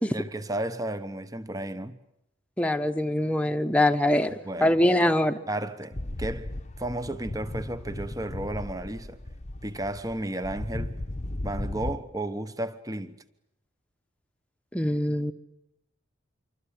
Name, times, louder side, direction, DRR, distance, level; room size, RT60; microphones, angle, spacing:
voice 1, 0.1-2.0 4.3-4.8 5.5-6.5 6.8-9.2 9.6-11.0 11.4-13.1, right 1 dB, 15° right, 1.1 m, -33 dB
voice 2, 2.6-5.4 14.7-15.3, left 1 dB, 5° left, 1.1 m, -23 dB
sound 1, 5.9-11.9, left 1 dB, 30° left, 1.0 m, -36 dB
26.5 x 24.5 x 8.5 m
head